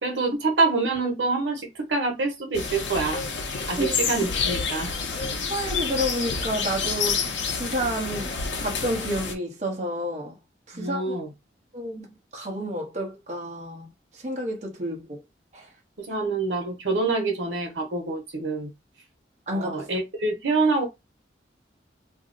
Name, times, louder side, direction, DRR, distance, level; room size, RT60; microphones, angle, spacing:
voice 1, 0.0-3.3 3.7-4.9 10.7-11.3 16.0-18.7 19.5-20.8, right 3 dB, 85° right, 0.9 m, -26 dB
sound 1, 2.5-9.3, left 5 dB, 85° left, 0.6 m, -28 dB
voice 2, 5.5-7.2 7.5-10.4 10.7-11.2 11.7-13.9 14.1-15.2 15.5-15.7 19.5-19.8, equal, 40° right, 0.9 m, -30 dB
2.6 x 2.1 x 3.7 m
head